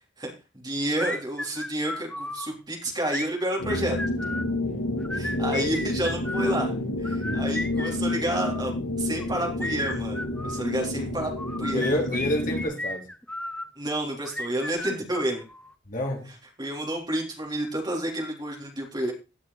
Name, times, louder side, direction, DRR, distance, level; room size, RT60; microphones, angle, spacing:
voice 1, 0.2-4.0 5.1-6.7 7.0-8.7 9.0-11.3 11.6-11.9 13.8-15.4 16.6-19.1, right 1 dB, 20° right, 1 dB, 3.7 m, -30 dB
sound 1, 1.0-2.5 3.1-4.5 5.0-6.5 7.0-8.6 9.2-10.6 11.4-13.7 14.2-15.7, left 1 dB, 5° left, 0.7 m, -34 dB
sound 2, 3.6-12.6, left 1 dB, 80° left, 2.0 m, -29 dB
voice 2, 11.7-13.0 15.9-16.3, left 1 dB, 45° left, 2 dB, 2.9 m, -28 dB
17.5 x 6.2 x 4.1 m, 0.30 s
head